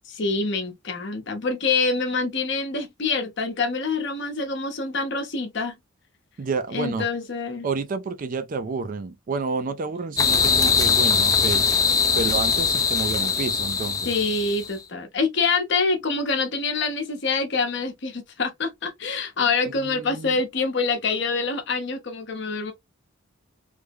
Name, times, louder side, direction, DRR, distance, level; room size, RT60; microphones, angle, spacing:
voice 1, 0.1-5.7 6.7-7.7 14.0-22.7, left 4 dB, 60° left, 0.9 m, -26 dB
voice 2, 6.4-7.1 7.6-11.7 12.1-14.1 19.8-20.4, right 4 dB, 40° right, 0.4 m, -29 dB
sound 1, 10.2-14.7, left 5 dB, 15° left, 0.4 m, -21 dB
3.3 x 2.1 x 3.4 m
head